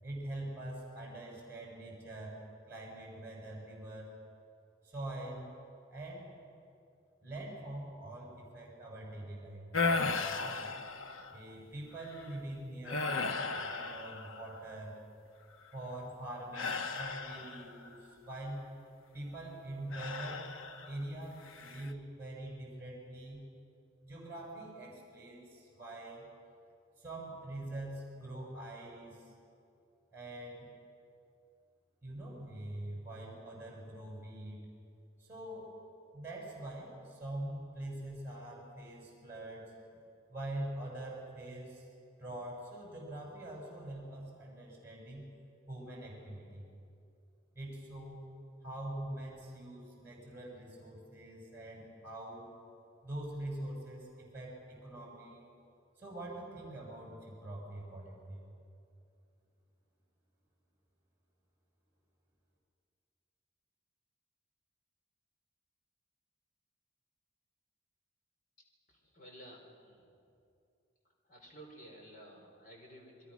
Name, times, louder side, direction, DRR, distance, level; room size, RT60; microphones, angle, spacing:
voice 1, 0.0-2.4 2.7-4.1 4.8-5.5 5.9-6.3 7.2-10.8 11.3-15.0 15.7-18.6 19.1-20.5 20.8-23.4 24.0-26.3 27.0-29.3 30.1-30.7 32.0-34.7 35.2-35.7 36.1-39.7 40.3-41.9 42.2-45.3 45.7-46.7 47.5-48.2 48.6-52.5 53.0-55.5 56.0-58.5, right 1 dB, 10° right, -2 dB, 6.1 m, -44 dB
sound 1, 9.7-11.5 12.0-12.3 12.9-14.7 16.5-17.9 19.9-21.0 21.5-21.9, left 4 dB, 85° left, 1.1 m, -36 dB
voice 2, 68.9-70.2 71.2-73.3, right 1 dB, 40° left, 0 dB, 4.8 m, -54 dB
28.0 x 22.0 x 6.3 m, 2.5 s
head